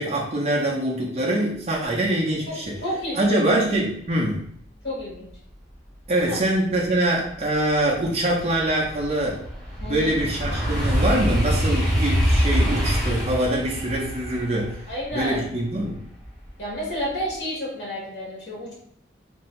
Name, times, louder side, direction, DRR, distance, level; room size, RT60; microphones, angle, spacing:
voice 1, 0.0-2.8 3.1-4.4 6.1-9.4 9.8-14.8 15.1-16.0, right 1 dB, 35° right, -4 dB, 0.6 m, -24 dB
voice 2, 2.8-3.3 4.8-5.3 6.3-6.4 9.8-10.2 14.9-15.4 16.6-18.7, equal, 65° left, -5 dB, 1.4 m, -30 dB
sound 1, 6.9-7.0 7.4-16.5 16.9-17.3, equal, ahead, 0.9 m, -25 dB
2.7 x 2.6 x 3.1 m, 0.65 s
head